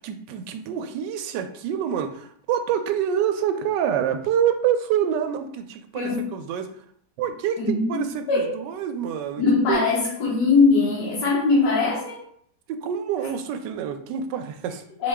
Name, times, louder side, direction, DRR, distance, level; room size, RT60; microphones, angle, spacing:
voice 1, 0.0-6.8 7.2-9.8 12.7-14.8, right 9 dB, 85° right, 8 dB, 1.2 m, -27 dB
voice 2, 5.9-6.3 7.6-8.6 9.4-12.2 15.0-15.1, left 4 dB, 80° left, -5 dB, 1.6 m, -21 dB
4.2 x 3.0 x 3.5 m, 0.64 s
omnidirectional pair, 1.8 m